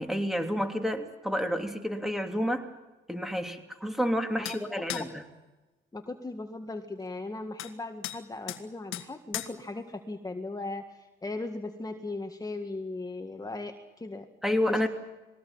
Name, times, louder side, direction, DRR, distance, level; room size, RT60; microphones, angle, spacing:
voice 1, 0.0-2.7 3.1-5.2 14.4-14.9, equal, ahead, 5 dB, 3.0 m, -29 dB
sound 1, 4.5-4.6 4.9-5.1 7.6-7.7 8.0-8.2 8.5-8.6 8.9-9.1 9.3-9.5, left 13 dB, 90° left, 1.8 m, -36 dB
voice 2, 5.9-14.3 14.7-14.9, left 2 dB, 20° left, 4 dB, 1.9 m, -38 dB
22.0 x 17.5 x 9.0 m, 1.1 s
cardioid pair, 90°, 20 cm